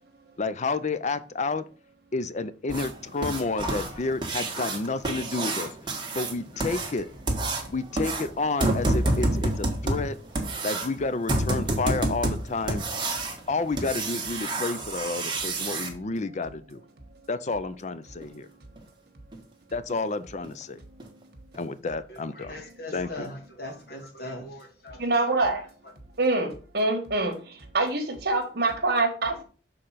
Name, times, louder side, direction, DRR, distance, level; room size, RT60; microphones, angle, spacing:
voice 1, 0.4-1.7 2.1-5.7 6.1-7.1 7.7-10.2 10.6-12.8 13.5-16.8 17.3-18.5 19.7-20.8 21.5-22.5 22.9-23.3, left 3 dB, 40° left, 0.5 m, -30 dB
sound 1, 2.7-15.9 18.2-18.3 18.8-18.9 19.3-19.4 19.9-20.0 20.4-20.6 21.0-21.1 21.5-21.6, right 1 dB, 25° right, 1.5 m, -29 dB
voice 2, 22.1-25.0 25.3-25.6, left 1 dB, 60° left, 2.1 m, -40 dB
voice 3, 25.0-25.6 26.2-27.3 27.7-29.4, right 2 dB, 65° right, 1.5 m, -25 dB
6.7 x 3.9 x 5.6 m
head